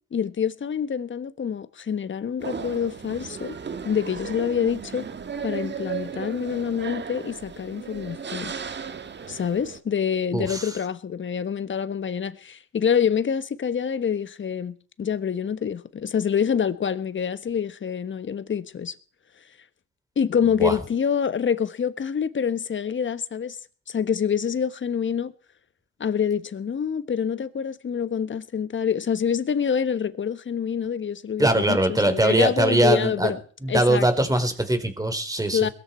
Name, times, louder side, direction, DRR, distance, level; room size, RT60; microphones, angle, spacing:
voice 1, 0.1-3.5 3.8-5.0 5.4-8.5 9.3-18.9 20.2-23.6 23.9-25.3 26.0-33.4 33.7-34.3 35.5-35.7, left 7 dB, 35° left, 1.4 m, -26 dB
sound 1, 2.4-9.8, right 6 dB, 30° right, 1.7 m, -35 dB
voice 2, 10.3-10.7 20.6-20.7 31.4-33.3 33.6-35.6, right 1 dB, 10° right, 3.8 m, -21 dB
21.5 x 13.5 x 4.5 m
supercardioid pair, 80°, 33 cm